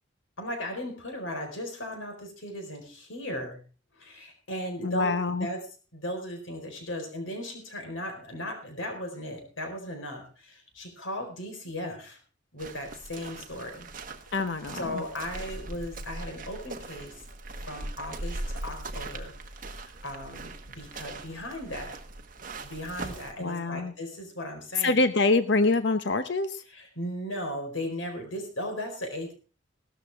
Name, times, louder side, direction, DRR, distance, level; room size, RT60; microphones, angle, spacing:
voice 1, 0.4-3.6 3.9-5.6 5.9-12.2 12.5-13.9 14.7-17.2 17.5-22.0 22.6-25.0 26.7-29.3, left 1 dB, 80° left, 4 dB, 4.5 m, -37 dB
voice 2, 4.8-5.5 14.3-15.0 23.4-23.9 24.8-26.6, left 3 dB, 60° left, 10 dB, 0.9 m, -25 dB
sound 1, 12.6-23.3, right 2 dB, 45° right, 1.4 m, -40 dB
16.5 x 13.0 x 3.5 m, 0.36 s
head